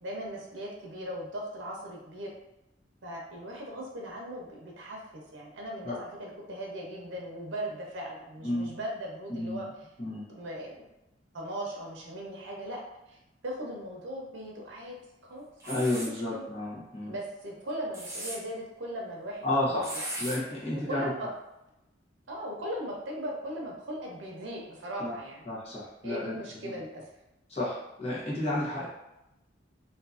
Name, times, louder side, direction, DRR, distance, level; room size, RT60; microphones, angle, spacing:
voice 1, 0.0-2.3 3.0-9.7 10.3-10.7 11.3-12.8 13.1-13.2 13.4-15.0 15.2-16.5 17.1-20.0 20.9-21.3 22.3-25.5 26.0-27.0 28.8-28.9, equal, 85° right, -1 dB, 0.7 m, -38 dB
voice 2, 8.4-8.8 9.3-9.6 10.0-10.2 15.7-17.1 19.4-19.8 20.2-21.1 25.0-25.1 25.5-26.4 26.6-26.7 27.5-28.9, left 1 dB, 35° left, -7 dB, 0.9 m, -31 dB
sound 1, 15.6-16.1 17.7-18.4 19.8-20.4, right 1 dB, 15° right, 0.6 m, -37 dB
2.7 x 2.5 x 2.4 m, 0.92 s
head